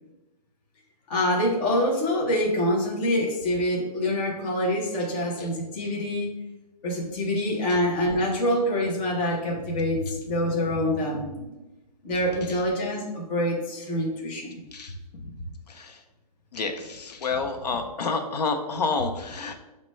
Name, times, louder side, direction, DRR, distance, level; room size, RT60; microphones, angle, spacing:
voice 1, 1.1-6.3 6.8-11.5 12.0-14.5, left 1 dB, 15° left, -2 dB, 0.5 m, -26 dB
voice 2, 16.5-19.5, left 4 dB, 80° left, 6 dB, 0.7 m, -29 dB
6.2 x 2.1 x 3.1 m, 1.0 s
hypercardioid pair, 165°, 20 cm